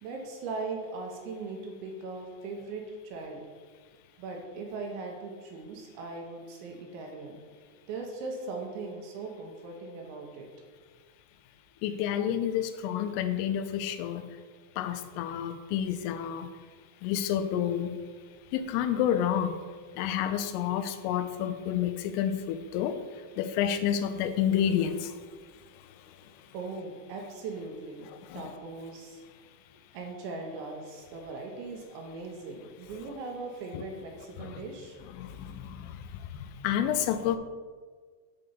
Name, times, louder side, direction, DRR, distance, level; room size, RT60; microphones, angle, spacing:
voice 1, 0.0-3.4 4.2-7.4 7.9-10.5 26.5-29.2 29.9-35.0, right 3 dB, 80° right, 1 dB, 3.0 m, -39 dB
voice 2, 11.8-14.2 14.8-16.5 17.0-18.0 18.5-19.6 20.0-23.0 23.4-25.1 28.3-28.5 33.7-33.8 34.4-34.6 35.1-36.0 36.3-37.4, left 9 dB, 90° left, 10 dB, 3.2 m, -29 dB
8.7 x 4.0 x 5.4 m, 1.5 s
omnidirectional pair, 5.7 m